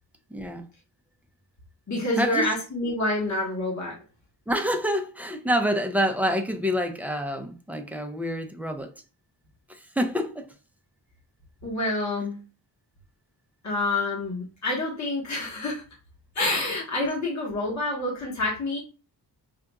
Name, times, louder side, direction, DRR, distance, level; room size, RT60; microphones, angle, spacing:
voice 1, 0.3-0.6 2.1-2.5 4.5-8.9 9.7-10.5, equal, 5° right, 0.5 m, -27 dB
voice 2, 1.9-4.0 11.6-12.4 13.6-15.8 16.3-18.8, left 2 dB, 40° left, 1.3 m, -27 dB
5.6 x 2.5 x 2.3 m
wide cardioid pair, 100°, 43 cm